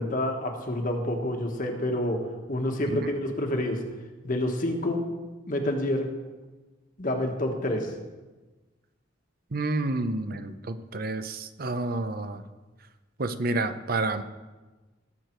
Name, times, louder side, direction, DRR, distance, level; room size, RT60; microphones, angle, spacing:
voice 1, 0.0-2.2 2.5-3.8 4.2-5.1 5.5-6.1 7.0-7.9, left 1 dB, 45° left, 2 dB, 1.4 m, -28 dB
voice 2, 9.5-12.4 13.2-14.2, right 2 dB, 50° right, 10 dB, 0.7 m, -29 dB
19.0 x 6.6 x 4.6 m, 1.2 s
head